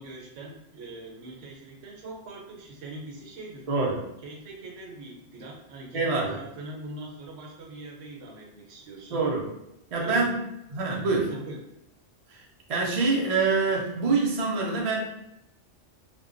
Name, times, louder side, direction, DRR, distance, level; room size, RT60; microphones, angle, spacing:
voice 1, 0.0-3.7 4.2-9.2 10.0-10.3 11.3-11.6, right 2 dB, 80° right, -1 dB, 0.9 m, -42 dB
voice 2, 3.7-4.0 5.9-6.3 9.1-9.4 9.9-10.4 10.7-11.3 12.3-12.4 12.7-15.0, right 3 dB, 50° right, -3 dB, 0.4 m, -25 dB
2.6 x 2.1 x 2.4 m, 0.84 s
omnidirectional pair, 1.3 m